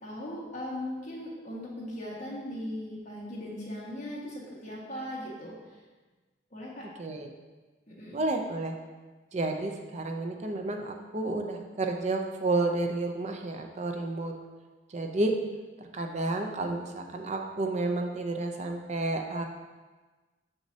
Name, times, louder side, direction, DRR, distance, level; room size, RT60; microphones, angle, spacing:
voice 1, 0.0-5.5 6.5-6.8 7.9-8.2, left 1 dB, 40° left, -6 dB, 1.6 m, -38 dB
voice 2, 7.0-7.3 8.1-8.7 9.3-14.3 14.9-15.3 15.8-19.5, right 2 dB, 40° right, 4 dB, 0.5 m, -31 dB
6.3 x 6.1 x 2.8 m, 1.3 s
head